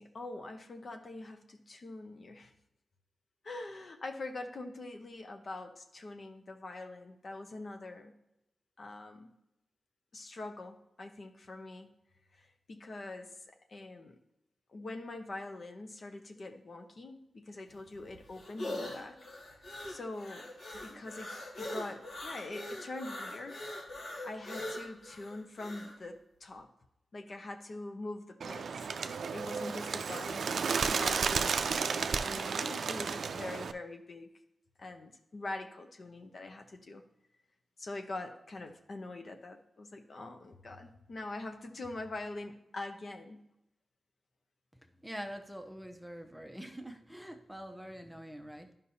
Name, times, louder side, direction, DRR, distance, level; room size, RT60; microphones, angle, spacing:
voice 1, 0.0-2.5 3.4-8.1 8.8-9.3 10.1-11.9 12.3-14.2 14.7-19.2 19.9-23.6 24.2-26.7 27.1-28.8 29.3-34.3 34.8-37.0 37.8-43.4, left 2 dB, 55° left, 5 dB, 0.9 m, -44 dB
sound 1, 17.7-25.9, left 1 dB, 80° left, 2.1 m, -42 dB
Bird, 28.4-33.7, right 5 dB, 75° right, 0.4 m, -33 dB
voice 2, 45.0-48.7, equal, 5° right, 4 dB, 0.7 m, -45 dB
11.0 x 5.4 x 2.8 m, 0.83 s
cardioid pair, 70°, 0 cm